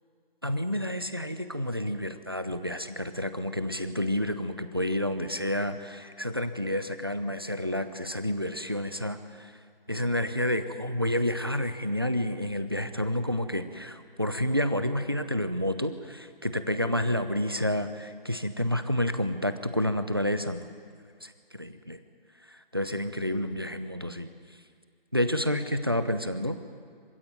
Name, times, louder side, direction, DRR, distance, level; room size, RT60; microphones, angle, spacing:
voice 1, 0.4-9.5 9.9-20.7 21.2-22.0 22.5-24.3 25.1-26.6, left 1 dB, 25° right, 11 dB, 0.7 m, -29 dB
26.0 x 16.0 x 9.4 m, 2.1 s
figure-of-eight pair, 180°, 29 cm